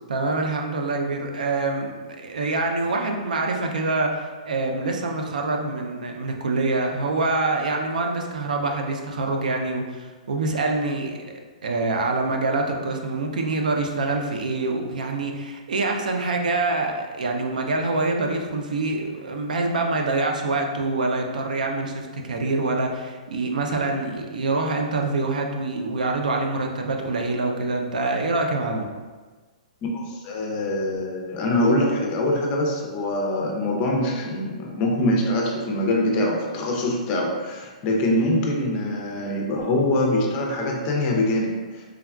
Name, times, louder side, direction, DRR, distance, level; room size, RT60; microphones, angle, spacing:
voice 1, 0.1-11.2 11.6-28.9, right 3 dB, 85° right, 2 dB, 0.4 m, -25 dB
voice 2, 29.9-41.9, left 1 dB, 30° left, 0 dB, 0.5 m, -24 dB
3.4 x 2.2 x 2.3 m, 1.4 s
hypercardioid pair, 145°, 4 cm